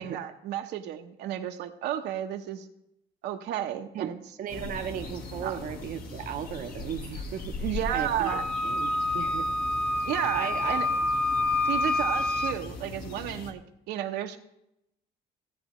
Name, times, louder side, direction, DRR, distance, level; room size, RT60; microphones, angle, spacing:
voice 1, 0.0-2.7 3.2-4.2 5.4-5.6 7.6-8.4 10.0-10.9 11.6-13.6 13.9-14.4, right 11 dB, 85° right, 5 dB, 0.9 m, -32 dB
voice 2, 4.4-9.5 10.3-10.7, right 9 dB, 55° right, 5 dB, 0.7 m, -36 dB
sound 1, 4.5-13.5, left 2 dB, 60° left, 1.3 m, -40 dB
Wind instrument woodwind instrument, 8.3-12.6, left 2 dB, 5° left, 0.7 m, -27 dB
16.0 x 7.8 x 3.1 m, 0.82 s
cardioid pair, 110°, 17 cm